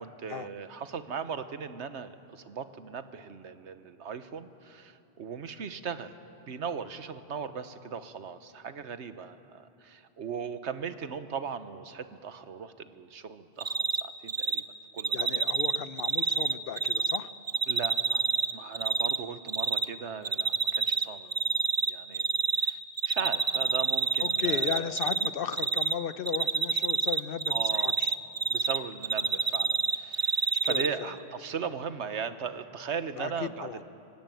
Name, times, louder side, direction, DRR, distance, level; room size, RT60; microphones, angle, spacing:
voice 1, 0.0-6.1 6.4-14.6 14.9-15.4 17.7-18.2 18.5-21.4 21.9-22.3 22.6-22.8 23.0-25.1 27.5-28.0 28.5-33.8, right 6 dB, 90° right, 11 dB, 1.3 m, -38 dB
Cricket, 13.6-14.0 14.3-14.6 15.0-17.2 17.5-19.2 19.5-19.8 20.2-21.0 21.3-22.7 23.0-25.3 25.5-25.9 26.3-28.8 29.0-30.9, right 5 dB, 35° right, 0.7 m, -27 dB
voice 2, 15.1-17.3 24.2-28.1 29.2-29.3 30.5-31.1 33.2-33.3 33.6-33.8, left 8 dB, 60° left, 14 dB, 0.9 m, -35 dB
24.5 x 17.5 x 9.1 m, 2.6 s
omnidirectional pair, 1.1 m